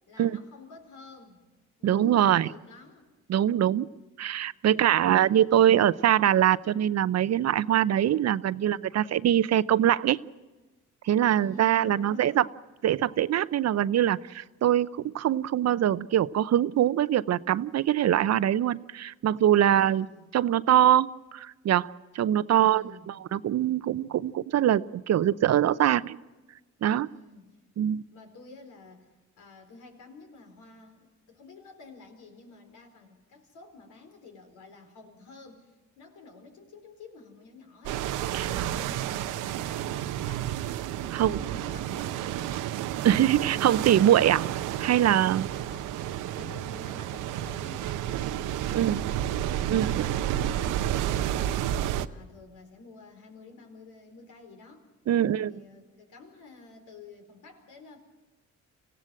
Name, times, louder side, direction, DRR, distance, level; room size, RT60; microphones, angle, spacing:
voice 1, 0.1-1.5 1.8-3.1 4.7-5.4 11.3-12.5 19.6-20.3 22.5-23.1 27.0-27.6 28.1-40.8 41.1-42.8 45.6-46.1 46.4-54.9 55.2-58.0, left 3 dB, 80° left, 4 dB, 4.6 m, -50 dB
voice 2, 1.8-2.5 3.3-3.9 4.2-10.2 11.0-12.4 12.8-20.1 20.3-22.8 23.3-26.2 26.8-27.1 27.8-28.0 38.3-38.5 41.1-41.4 43.0-44.5 44.8-45.5 48.7-49.0 49.7-50.0 55.1-55.5, right 11 dB, 60° right, 16 dB, 0.7 m, -23 dB
sound 1, 37.9-52.1, right 11 dB, 90° right, 0.8 m, -31 dB
25.5 x 16.5 x 7.8 m, 1.1 s
cardioid pair, 90°, 30 cm